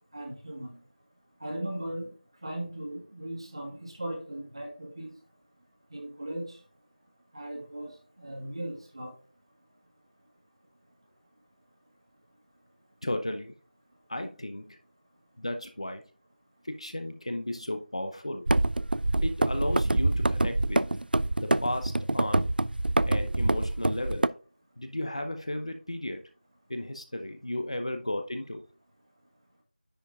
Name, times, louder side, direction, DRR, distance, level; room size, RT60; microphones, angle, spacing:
voice 1, 0.1-0.7 1.4-2.1 2.4-5.1 5.9-6.5 7.3-7.9 8.2-9.1, right 1 dB, 30° right, 1.9 m, -37 dB
voice 2, 13.0-13.5 14.1-14.8 15.4-16.0 16.6-18.5 19.2-20.8 21.4-22.5 23.1-24.3 24.8-26.2 26.7-28.6, left 1 dB, 40° left, 0.8 m, -34 dB
sound 1, 18.5-24.3, right 2 dB, 75° right, 0.4 m, -26 dB
10.0 x 4.8 x 3.6 m
figure-of-eight pair, 180°, 5 cm